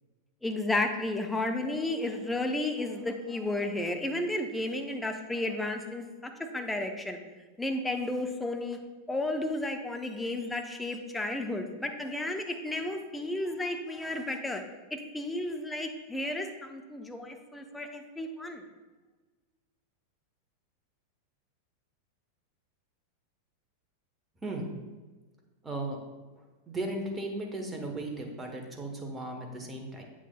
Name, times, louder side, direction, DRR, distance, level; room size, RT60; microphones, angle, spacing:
voice 1, 0.4-6.0 6.4-7.2 7.6-8.8 9.1-14.6 14.9-18.6, left 2 dB, 5° left, 4 dB, 0.7 m, -32 dB
voice 2, 25.6-26.0 26.7-30.0, right 2 dB, 15° right, 2 dB, 1.1 m, -36 dB
8.1 x 6.0 x 2.3 m, 1.3 s
figure-of-eight pair, 90°, 0 cm